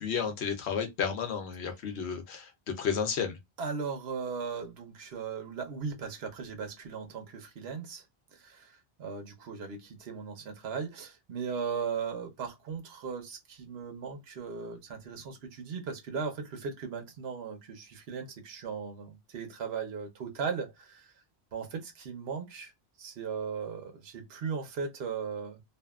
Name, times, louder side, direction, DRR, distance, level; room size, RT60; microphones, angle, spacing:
voice 1, 0.0-3.4, left 6 dB, 90° left, 1.0 m, -32 dB
voice 2, 3.6-8.0 8.3-21.1 21.5-22.7 23.0-25.6, right 5 dB, 70° right, 1.0 m, -37 dB
2.7 x 2.4 x 2.3 m
omnidirectional pair, 1.1 m